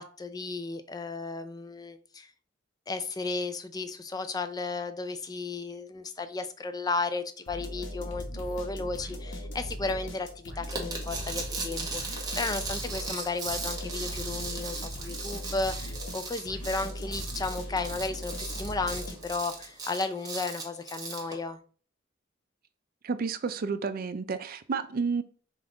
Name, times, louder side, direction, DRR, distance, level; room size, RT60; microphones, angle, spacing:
voice 1, 0.0-2.3 2.9-21.6, left 3 dB, 20° left, 0.4 m, -34 dB
sound 1, 7.5-19.6, equal, 65° left, 1.0 m, -39 dB
sound 2, 10.7-21.3, right 3 dB, 20° right, 1.0 m, -37 dB
voice 2, 23.0-25.2, right 5 dB, 50° right, 0.4 m, -31 dB
5.2 x 2.4 x 3.8 m
head